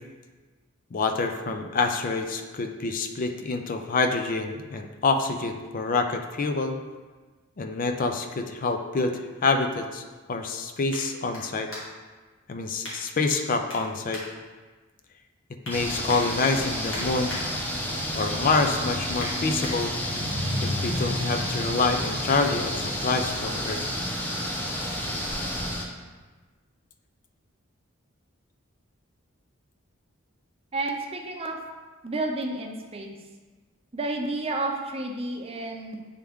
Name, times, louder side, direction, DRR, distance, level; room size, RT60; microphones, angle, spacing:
voice 1, 0.9-6.8 7.6-11.7 12.5-14.2 15.7-17.3 18.1-19.9 20.6-23.8, left 3 dB, 40° left, 6 dB, 0.4 m, -27 dB
sound 1, 10.9-12.2 12.8-13.4 13.7-15.0 15.3-15.8 16.1-17.4 17.8-18.1 18.4-19.7 20.3-20.4, left 1 dB, 70° left, 1.9 m, -41 dB
sound 2, 15.7-25.8, equal, 10° left, 0.7 m, -30 dB
voice 2, 30.7-31.6 32.0-33.1 33.9-36.2, right 2 dB, 30° right, 2 dB, 0.6 m, -31 dB
8.4 x 3.4 x 3.5 m, 1.3 s
head